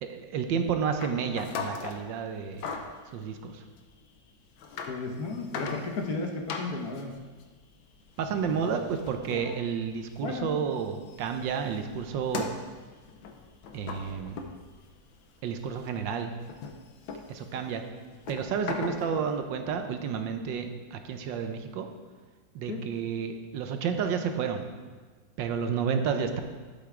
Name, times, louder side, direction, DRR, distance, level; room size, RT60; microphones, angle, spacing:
voice 1, 0.0-2.7 3.1-3.6 8.2-12.5 13.7-14.4 15.4-16.3 17.3-17.8 18.3-21.9 22.5-24.6 25.4-26.4, right 6 dB, 75° right, 6 dB, 1.4 m, -31 dB
sound 1, 1.0-2.0 2.5-3.0 3.8-3.9 4.5-4.9 5.3-6.2 6.5-10.5 10.8-15.2 15.5-19.3, left 5 dB, 85° left, 1.6 m, -39 dB
voice 2, 4.9-7.1 8.3-8.8 10.2-10.7 22.7-22.9, left 3 dB, 60° left, 2 dB, 1.3 m, -34 dB
11.5 x 8.0 x 3.7 m, 1.4 s
omnidirectional pair, 2.1 m